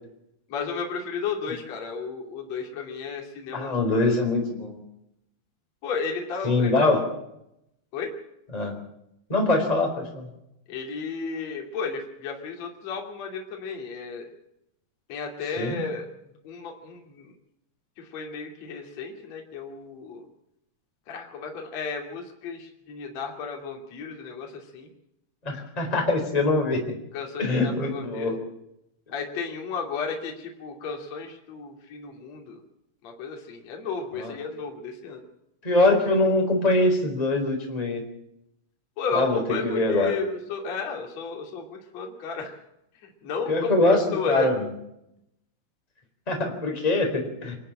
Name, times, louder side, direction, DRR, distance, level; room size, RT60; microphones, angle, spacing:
voice 1, 0.5-4.0 5.8-6.7 7.9-8.1 10.7-14.3 15.1-16.1 16.4-17.3 18.0-20.3 21.1-24.9 27.1-28.3 29.1-32.6 33.0-35.2 39.0-42.5 43.2-44.5, left 5 dB, 40° left, 1 dB, 3.5 m, -33 dB
voice 2, 3.5-4.8 6.4-7.0 8.5-8.8 9.3-10.3 15.6-15.8 25.4-26.9 27.4-28.4 34.2-34.3 35.6-38.0 39.1-40.1 43.5-44.0 44.3-44.5 46.3-47.6, left 2 dB, 10° left, 2 dB, 3.7 m, -23 dB
25.0 x 12.0 x 8.8 m, 0.81 s
omnidirectional pair, 5.1 m